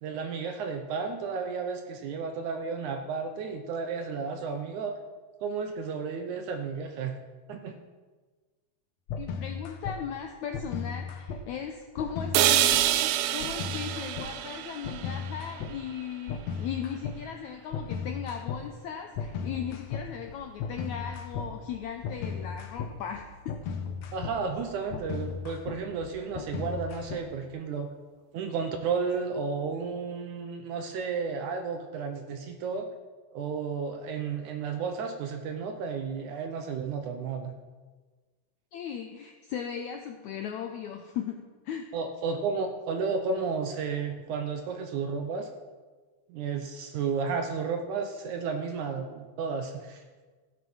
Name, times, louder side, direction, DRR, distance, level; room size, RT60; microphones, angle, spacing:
voice 1, 0.0-5.0 5.4-7.2 7.5-7.8 24.1-27.9 28.3-32.9 33.3-37.5 41.9-45.5 46.3-50.2, right 5 dB, 70° right, 5 dB, 2.0 m, -32 dB
sound 1, 9.1-10.0 10.5-11.4 12.0-12.8 13.4-14.3 14.8-15.7 16.3-17.2 17.7-18.6 19.2-27.5, left 6 dB, 70° left, 1.7 m, -36 dB
voice 2, 9.2-23.6 38.7-41.9, left 8 dB, 90° left, 4 dB, 1.6 m, -37 dB
sound 2, 12.3-16.4, right 12 dB, 90° right, 2.5 m, -27 dB
15.5 x 7.4 x 6.3 m, 1.4 s
omnidirectional pair, 4.3 m